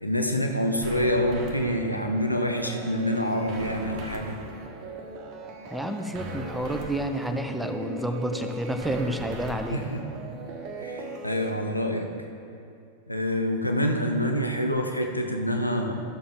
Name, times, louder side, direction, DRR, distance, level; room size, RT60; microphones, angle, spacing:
voice 1, 0.0-4.4 9.7-10.0 10.8-12.1 13.1-16.0, equal, 85° left, 3 dB, 0.7 m, -26 dB
sound 1, 0.8-11.5, right 2 dB, 40° right, 1.3 m, -38 dB
voice 2, 5.7-9.9, right 1 dB, ahead, 5 dB, 0.7 m, -30 dB
14.0 x 6.9 x 3.6 m, 2.6 s
figure-of-eight pair, 90°, 0 cm